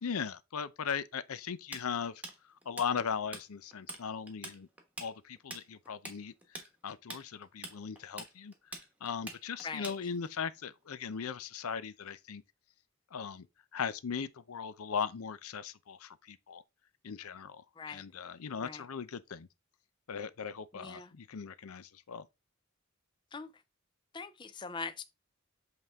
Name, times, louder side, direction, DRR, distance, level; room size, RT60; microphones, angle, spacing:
voice 1, 0.0-2.2 2.7-4.7 5.0-6.3 6.8-8.5 9.0-12.4 13.1-13.5 13.7-16.6 17.0-19.5 20.1-22.3, left 6 dB, 80° left, 0.6 m, -38 dB
Tools, 1.7-3.4 3.7-4.0 4.3-10.3, right 1 dB, 5° right, 1.1 m, -44 dB
voice 2, 20.7-21.1 23.3-23.5 24.1-25.0, left 4 dB, 20° left, 0.4 m, -41 dB
8.0 x 3.6 x 3.5 m
head